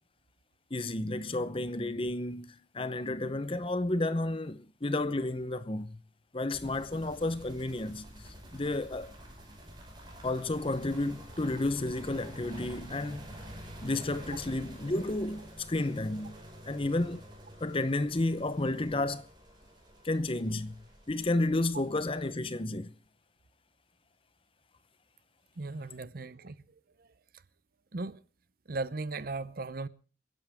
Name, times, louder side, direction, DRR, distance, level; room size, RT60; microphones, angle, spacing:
voice 1, 0.7-6.0 6.3-8.1 8.5-9.1 10.2-13.2 13.8-16.4 16.6-17.2 17.6-19.3 20.0-20.8 21.1-22.9, left 2 dB, 30° left, 0.7 m, -31 dB
sound 1, 6.5-22.3, equal, 25° right, 5.1 m, -49 dB
voice 2, 25.6-26.6 27.9-28.2 28.7-29.9, right 3 dB, 50° right, 0.7 m, -37 dB
28.0 x 11.0 x 3.5 m
head